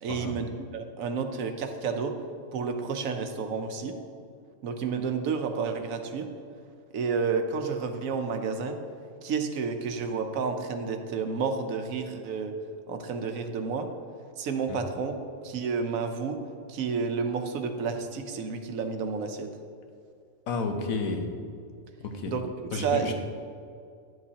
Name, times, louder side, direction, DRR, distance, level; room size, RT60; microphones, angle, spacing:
voice 1, 0.0-2.1 2.5-3.9 4.6-6.3 6.9-8.8 9.2-12.5 12.9-13.9 14.4-15.1 15.4-16.4 16.7-19.5 22.3-23.1, right 5 dB, 80° right, 6 dB, 1.1 m, -30 dB
voice 2, 20.5-21.3 22.0-22.3 22.7-23.1, left 4 dB, 90° left, 4 dB, 1.3 m, -31 dB
10.5 x 7.7 x 2.8 m, 2.3 s
omnidirectional pair, 1.4 m